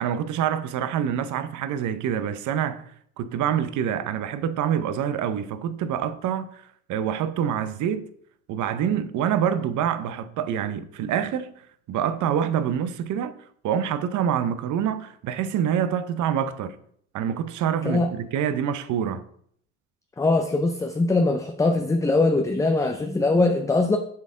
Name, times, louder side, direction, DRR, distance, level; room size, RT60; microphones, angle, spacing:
voice 1, 0.0-2.9 3.2-8.0 8.5-11.5 11.9-13.4 13.6-16.8 17.1-19.3, right 9 dB, 55° right, 0.7 m, -26 dB
voice 2, 20.2-24.0, left 2 dB, 10° left, 0.4 m, -22 dB
7.2 x 4.1 x 3.7 m
supercardioid pair, 90°, 37 cm